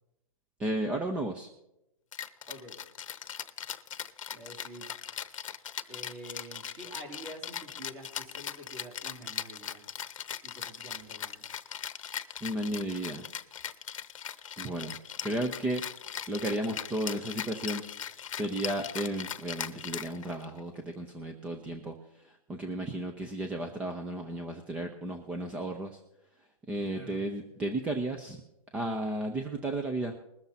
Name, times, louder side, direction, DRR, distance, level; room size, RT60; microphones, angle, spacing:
voice 1, 0.6-1.5 12.4-13.2 14.6-15.0 15.2-15.8 16.3-17.8 18.3-22.0 22.5-26.0 26.7-28.4 28.7-30.2, right 1 dB, 5° right, 5 dB, 0.5 m, -33 dB
Rattle (instrument), 2.1-20.6, left 9 dB, 65° left, 0.8 m, -39 dB
voice 2, 2.5-2.8 4.3-4.9 5.9-9.8 10.4-11.4 26.9-27.2, equal, 30° right, 2 dB, 3.2 m, -47 dB
21.0 x 7.1 x 4.0 m, 0.87 s
hypercardioid pair, 155°, 18 cm